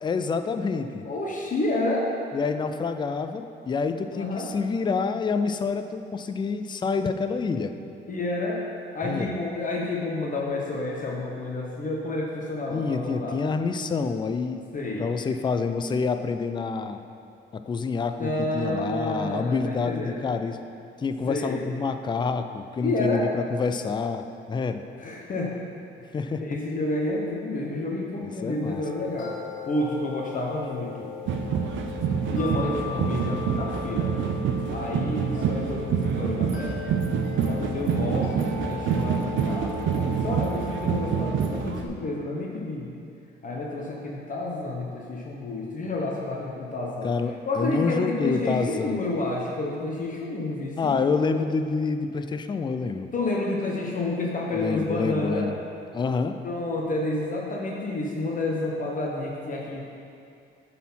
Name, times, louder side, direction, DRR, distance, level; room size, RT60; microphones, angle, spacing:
voice 1, 0.0-1.1 2.3-7.8 9.0-9.3 12.7-14.6 15.0-17.0 17.5-20.6 21.0-24.8 26.1-26.4 28.2-28.9 47.0-49.0 50.8-53.1 54.5-55.6 55.9-56.4, left 4 dB, 25° left, 8 dB, 0.4 m, -27 dB
voice 2, 1.0-2.1 4.1-4.5 8.1-8.6 8.9-13.4 14.7-15.0 18.2-20.2 21.3-21.6 22.8-23.3 25.0-25.6 26.2-29.3 29.7-31.1 32.3-34.2 34.7-36.8 37.5-42.9 43.4-47.1 47.4-51.0 53.1-55.5 56.4-59.8, left 2 dB, 40° left, -2 dB, 1.0 m, -29 dB
sound 1, 28.5-41.2, left 3 dB, 70° left, 1.3 m, -38 dB
sound 2, 31.3-41.9, right 6 dB, 75° right, 0.6 m, -27 dB
8.2 x 4.2 x 5.6 m, 2.5 s
cardioid pair, 90°, 20 cm